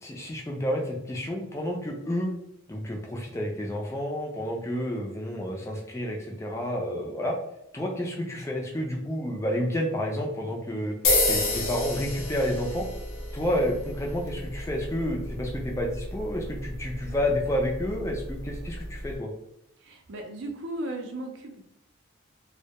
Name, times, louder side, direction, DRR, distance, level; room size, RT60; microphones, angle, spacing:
voice 1, 0.0-2.3 2.7-7.4 7.7-11.0 11.3-12.9 13.3-19.3, left 1 dB, 15° left, 0 dB, 0.4 m, -30 dB
sound 1, 11.0-19.2, left 2 dB, 85° left, 0.6 m, -31 dB
voice 2, 19.8-21.6, right 1 dB, 60° right, 2 dB, 0.5 m, -36 dB
2.2 x 2.1 x 2.8 m, 0.77 s
head